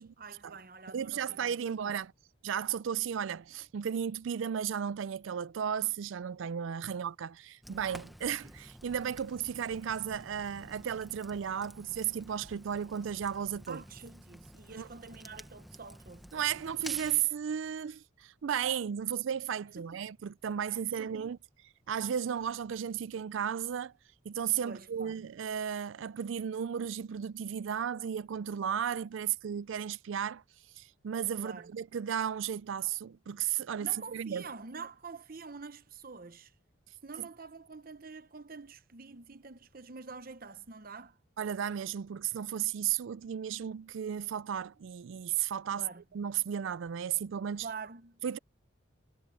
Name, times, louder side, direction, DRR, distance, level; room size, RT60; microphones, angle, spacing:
voice 1, 0.0-1.5 1.8-1.9 13.7-16.3 19.8-19.9 21.0-21.3 24.6-25.2 31.4-31.7 33.8-36.5 37.0-41.2 45.7-46.0 47.6-48.2, right 4 dB, 45° right, 0.9 m, -46 dB
voice 2, 0.9-2.1 2.4-13.8 14.8-14.9 16.3-21.4 21.9-23.9 24.2-30.4 30.8-34.5 37.2-37.3 41.4-45.9 46.1-47.7 48.2-48.4, right 8 dB, 70° right, 0.4 m, -34 dB
Fire, 7.6-17.2, equal, ahead, 1.0 m, -51 dB
head